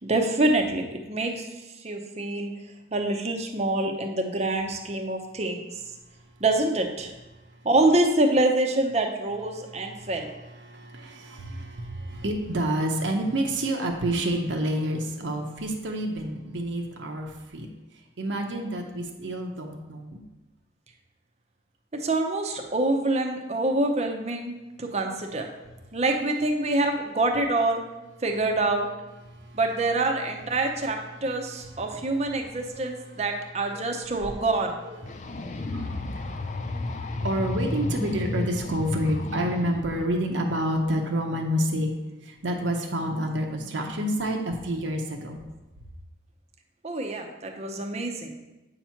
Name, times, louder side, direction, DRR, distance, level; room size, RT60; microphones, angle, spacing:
voice 1, 0.0-1.5 1.8-2.5 2.9-5.6 6.4-7.1 7.6-10.3 19.2-19.3 21.9-25.5 25.9-27.8 28.2-28.9 29.5-34.8 46.8-48.3, right 2 dB, 35° right, 3 dB, 0.7 m, -26 dB
voice 2, 9.8-10.1 10.6-17.7 18.2-20.2 29.4-29.6 32.7-32.9 33.7-33.8 35.2-41.9 42.2-45.4, right 1 dB, 85° right, 2 dB, 0.8 m, -29 dB
sound 1, 35.0-40.1, left 2 dB, 40° left, 0.4 m, -32 dB
8.0 x 3.0 x 5.7 m, 1.0 s
head